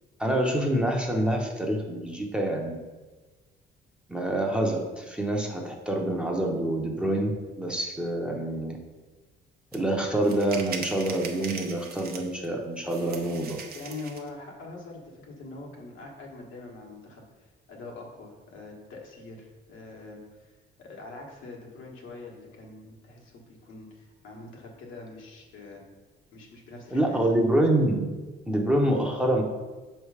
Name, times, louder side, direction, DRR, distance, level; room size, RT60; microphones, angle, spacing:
voice 1, 0.2-2.8 4.1-8.8 9.7-13.6 26.9-28.1 28.5-29.4, right 1 dB, 5° right, 0 dB, 0.8 m, -26 dB
sound 1, 9.7-9.8 10.2-12.5 12.9-14.3, right 5 dB, 55° right, 0.7 m, -40 dB
voice 2, 13.7-17.2 17.7-20.5 20.8-25.8 26.3-27.2, left 3 dB, 85° left, -1 dB, 1.4 m, -43 dB
6.2 x 3.3 x 4.8 m, 1.3 s
cardioid pair, 130°, 20 cm